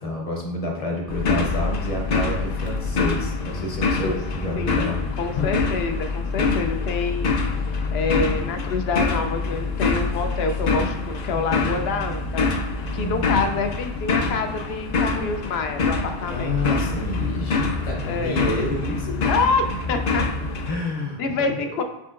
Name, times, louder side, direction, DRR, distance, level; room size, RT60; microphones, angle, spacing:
voice 1, 0.0-5.0 13.0-13.2 16.3-19.2 19.7-19.8 20.7-21.7, left 1 dB, 35° left, 0 dB, 0.9 m, -29 dB
sound 1, 1.1-20.7, left 4 dB, 55° left, 0.5 m, -25 dB
voice 2, 2.9-3.6 4.0-4.2 4.6-7.3 7.9-12.5 12.9-16.5 18.0-18.4 19.3-20.3 21.2-21.8, left 4 dB, 75° left, 6 dB, 0.8 m, -27 dB
5.0 x 3.6 x 2.5 m, 0.91 s
omnidirectional pair, 1.1 m